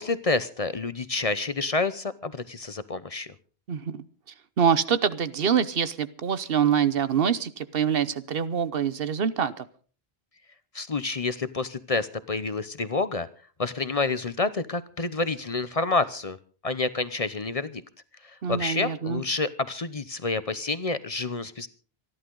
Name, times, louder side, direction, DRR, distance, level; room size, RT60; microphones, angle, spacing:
voice 1, 0.0-3.3 10.7-13.3 13.6-16.4 16.6-17.8 18.5-21.7, left 3 dB, 40° left, 14 dB, 0.8 m, -28 dB
voice 2, 3.7-4.0 4.6-9.7 18.4-19.2, right 7 dB, 65° right, 15 dB, 1.1 m, -25 dB
27.0 x 11.0 x 3.8 m, 0.40 s
omnidirectional pair, 1.0 m